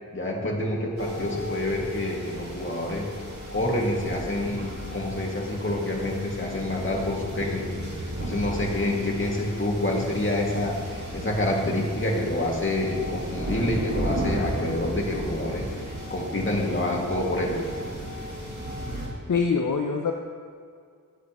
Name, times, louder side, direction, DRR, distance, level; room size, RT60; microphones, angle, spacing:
voice 1, 0.1-3.1 3.5-4.7 4.9-7.6 7.9-15.6 16.1-17.6, left 1 dB, 35° left, -2 dB, 2.2 m, -27 dB
sound 1, 1.0-19.1, equal, 55° right, 2.7 m, -35 dB
voice 2, 19.3-20.1, left 5 dB, 65° left, 3 dB, 0.7 m, -24 dB
18.0 x 8.1 x 3.1 m, 2.1 s
wide cardioid pair, 60°, 34 cm